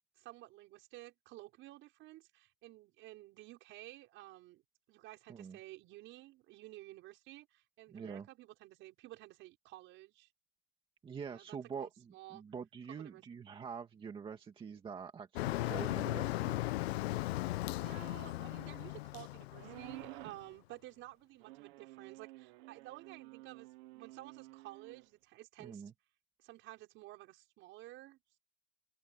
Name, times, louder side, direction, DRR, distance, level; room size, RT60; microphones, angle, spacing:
voice 1, 0.2-4.6 4.9-10.3 11.3-12.4 12.9-13.2 17.8-25.9 26.4-28.4, right 17 dB, 40° right, 6.3 m, -53 dB
voice 2, 7.9-8.3 11.0-16.7 25.6-25.9, right 6 dB, 15° right, 2.0 m, -45 dB
Motor vehicle (road), 15.4-20.3, left 17 dB, 85° left, 0.9 m, -37 dB
sound 1, 19.5-20.5 21.4-25.0, right 20 dB, 55° right, 1.1 m, -52 dB
open air
supercardioid pair, 155°, 31 cm